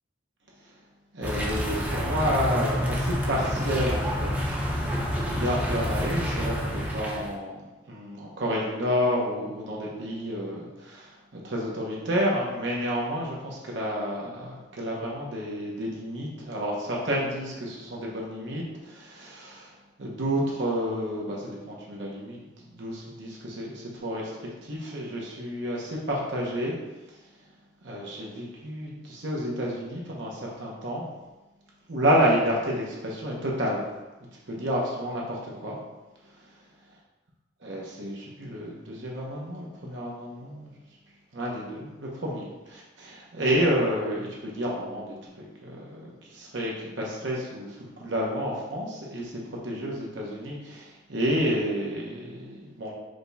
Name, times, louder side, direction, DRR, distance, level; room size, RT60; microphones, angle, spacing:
voice 1, 1.1-5.0 5.3-19.7 20.0-24.3 24.6-26.8 27.8-31.1 31.9-33.8 34.5-35.8 37.6-40.7 41.3-52.9, equal, 70° right, -3 dB, 1.0 m, -30 dB
sound 1, 1.2-7.3, equal, 10° right, 0.6 m, -28 dB
5.0 x 2.4 x 4.0 m, 1.1 s
head